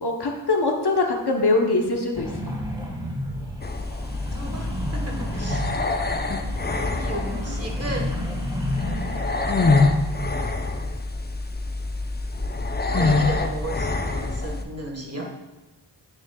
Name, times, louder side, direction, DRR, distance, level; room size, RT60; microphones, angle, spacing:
voice 1, 0.0-2.3, left 2 dB, 60° left, 2 dB, 1.0 m, -22 dB
sound 1, 2.1-9.7, equal, 10° right, 1.4 m, -32 dB
sound 2, 3.6-14.6, left 3 dB, 20° left, 0.6 m, -25 dB
voice 2, 4.3-5.8 7.0-8.2 12.9-15.3, right 2 dB, 30° right, 1 dB, 1.4 m, -35 dB
9.4 x 6.2 x 2.3 m, 1.1 s
wide cardioid pair, 55°, 45 cm